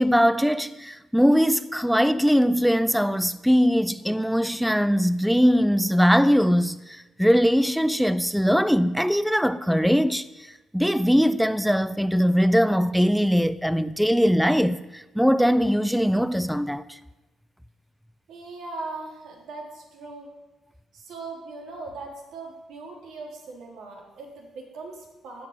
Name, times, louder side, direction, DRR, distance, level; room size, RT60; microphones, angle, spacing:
voice 1, 0.0-17.0, equal, ahead, 0.5 m, -21 dB
voice 2, 18.3-20.3 20.9-25.5, right 3 dB, 80° right, 3.6 m, -39 dB
15.0 x 5.9 x 9.1 m
cardioid pair, 90°, 0 cm